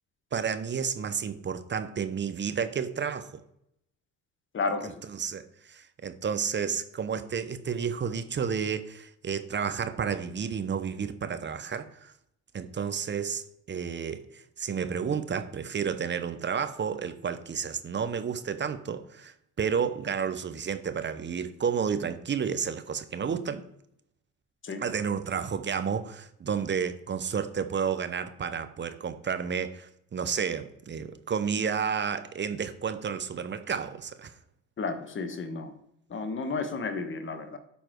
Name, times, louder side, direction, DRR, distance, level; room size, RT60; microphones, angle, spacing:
voice 1, 0.3-3.3 5.1-12.1 12.5-23.7 24.8-34.3, right 7 dB, 30° right, 0.9 m, -31 dB
voice 2, 4.5-4.9 24.6-24.8 34.8-35.7 36.1-37.6, left 4 dB, 30° left, 1.4 m, -32 dB
12.0 x 4.3 x 4.6 m
hypercardioid pair, 75°, 38 cm